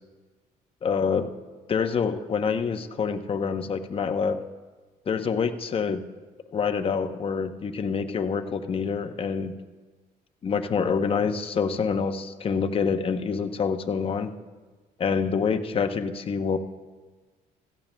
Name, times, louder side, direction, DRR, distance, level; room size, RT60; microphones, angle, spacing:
voice 1, 0.8-1.3 1.7-4.4 5.1-6.0 6.5-9.5 10.4-14.3 15.0-16.6, left 5 dB, 35° left, 7 dB, 0.7 m, -26 dB
16.0 x 14.5 x 2.2 m, 1.3 s
cardioid pair, 110°, 17 cm